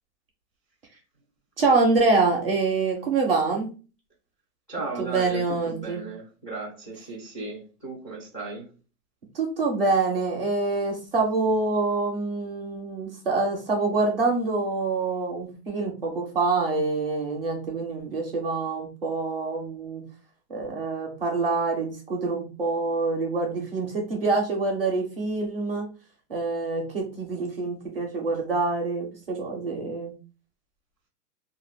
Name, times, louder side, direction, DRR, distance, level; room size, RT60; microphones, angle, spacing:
voice 1, 1.6-3.7 5.0-6.0 9.3-20.0 20.5-25.8 26.3-30.1, right 3 dB, 40° right, 1 dB, 0.5 m, -26 dB
voice 2, 4.7-8.6, right 3 dB, 20° left, -6 dB, 0.4 m, -36 dB
2.3 x 2.1 x 3.2 m, 0.35 s
supercardioid pair, 180°, 49 cm